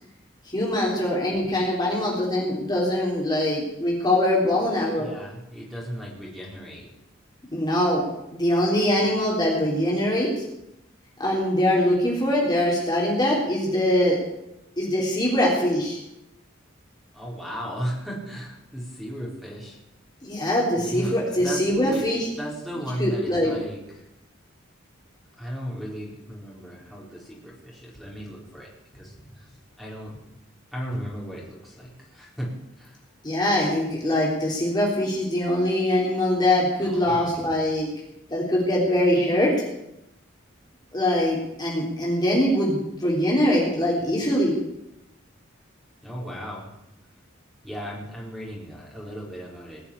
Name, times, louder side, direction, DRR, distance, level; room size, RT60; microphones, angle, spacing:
voice 1, 0.5-5.1 7.5-8.0 8.3-10.3 11.2-14.2 14.8-16.0 20.2-22.3 23.0-23.6 33.2-37.9 38.3-39.5 40.9-44.6, left 1 dB, 20° left, -4 dB, 3.5 m, -23 dB
voice 2, 5.0-6.9 17.1-19.8 20.8-22.0 22.4-23.8 25.4-28.7 28.9-29.1 29.8-30.2 30.7-32.5 32.8-33.0 36.8-37.4 46.0-46.7 47.6-49.8, equal, ahead, -4 dB, 4.2 m, -35 dB
20.0 x 7.0 x 8.6 m, 0.86 s
head